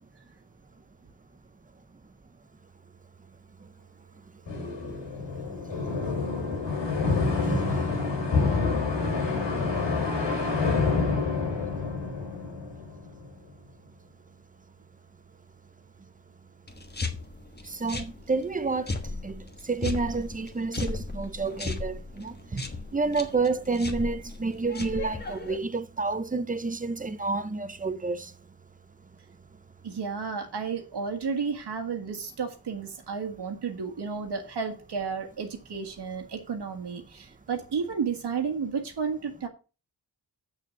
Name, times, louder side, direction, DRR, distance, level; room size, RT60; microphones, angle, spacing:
sound 1, 4.5-13.3, left 4 dB, 85° left, 3.7 m, -27 dB
voice 1, 7.5-7.8 17.6-22.7 22.9-28.3, right 3 dB, 20° right, 0.8 m, -30 dB
sound 2, 16.7-25.6, left 3 dB, 25° left, 1.3 m, -36 dB
voice 2, 29.8-39.5, right 5 dB, 70° right, 1.7 m, -32 dB
7.4 x 6.6 x 6.5 m
wide cardioid pair, 130°, 42 cm